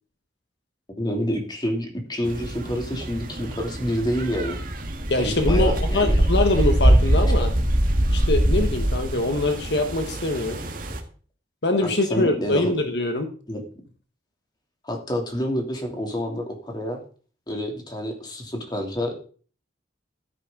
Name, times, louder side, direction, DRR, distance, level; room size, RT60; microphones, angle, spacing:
voice 1, 0.9-4.6 5.2-6.2 11.8-12.7 13.5-13.6 14.8-17.0 17.5-19.2, equal, 25° left, 2 dB, 2.9 m, -28 dB
sound 1, 2.3-11.0, right 1 dB, 50° right, 1.8 m, -23 dB
voice 2, 5.1-7.5 8.1-10.6 11.6-13.3, left 2 dB, 70° left, 6 dB, 1.4 m, -23 dB
13.0 x 9.6 x 3.9 m, 0.40 s
head